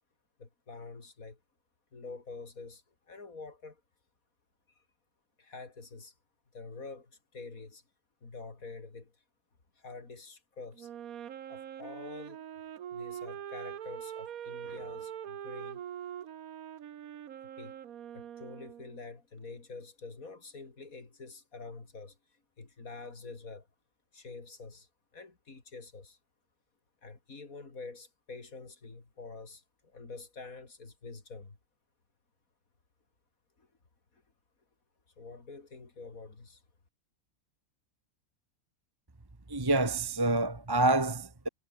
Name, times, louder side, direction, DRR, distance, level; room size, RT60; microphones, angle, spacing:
voice 1, 0.4-1.4 1.9-3.8 4.8-4.9 5.4-6.1 6.5-7.8 8.2-9.1 9.8-10.9 11.5-12.4 12.9-15.8 17.6-17.8 18.1-22.2 22.6-23.7 24.1-26.2 27.0-31.6 33.6-33.7 34.1-34.2 35.2-36.6, left 3 dB, 75° left, 3.7 m, -47 dB
Wind instrument woodwind instrument, 10.7-19.1, right 10 dB, 85° right, 1.4 m, -43 dB
voice 2, 39.5-41.5, right 2 dB, 15° right, 1.5 m, -27 dB
omnidirectional pair, 1.5 m